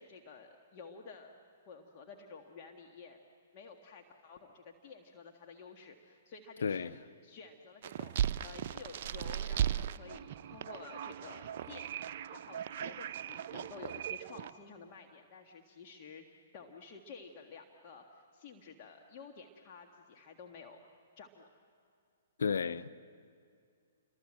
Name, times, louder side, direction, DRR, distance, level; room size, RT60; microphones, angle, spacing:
voice 1, 0.0-1.3 1.7-3.2 3.5-6.9 7.2-16.2 16.5-20.8 21.2-21.5, left 5 dB, 40° left, 1.8 m, -52 dB
voice 2, 6.6-7.0 22.4-22.9, left 6 dB, 70° left, 0.6 m, -32 dB
sound 1, 7.8-14.5, right 10 dB, 50° right, 0.5 m, -37 dB
28.5 x 23.0 x 7.7 m
hypercardioid pair, 120°, 0 cm